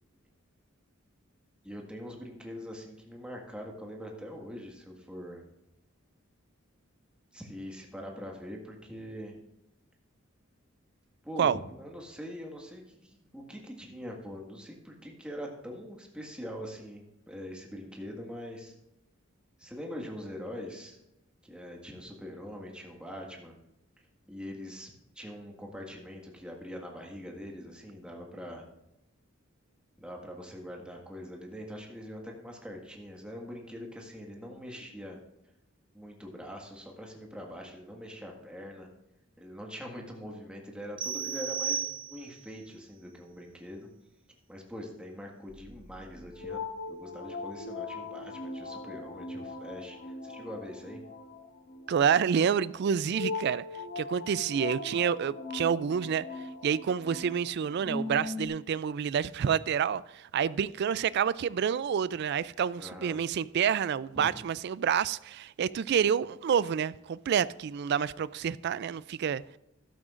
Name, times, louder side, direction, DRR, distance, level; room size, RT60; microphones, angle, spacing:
voice 1, 1.6-5.4 7.3-9.4 11.2-18.7 19.6-21.0 21.4-23.6 24.3-24.9 25.1-28.6 30.0-35.2 35.9-38.9 39.4-43.9 44.5-46.6 46.9-51.0 62.8-63.2 64.1-64.3, equal, 5° right, 0 dB, 1.7 m, -43 dB
sound 1, 41.0-42.5, right 7 dB, 25° right, 0.6 m, -34 dB
sound 2, 45.5-58.5, left 3 dB, 70° left, 1.6 m, -40 dB
voice 2, 51.9-53.6 54.0-69.4, right 7 dB, 55° right, 18 dB, 0.3 m, -28 dB
14.0 x 12.0 x 2.5 m, 0.87 s
head